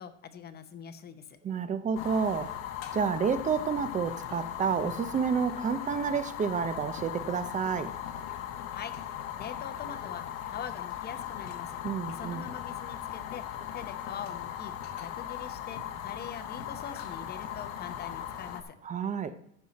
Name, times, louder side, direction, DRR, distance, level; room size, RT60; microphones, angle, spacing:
voice 1, 0.0-1.4 8.7-11.8 12.1-14.7 15.0-18.7, left 7 dB, 25° left, 10 dB, 0.8 m, -43 dB
voice 2, 1.4-2.5 2.9-7.9 11.8-12.5 18.8-19.4, right 6 dB, 20° right, 12 dB, 0.6 m, -30 dB
Fire, 2.0-18.6, left 10 dB, 65° left, 1.3 m, -38 dB
14.5 x 5.6 x 4.2 m, 0.74 s
cardioid pair, 145°, 36 cm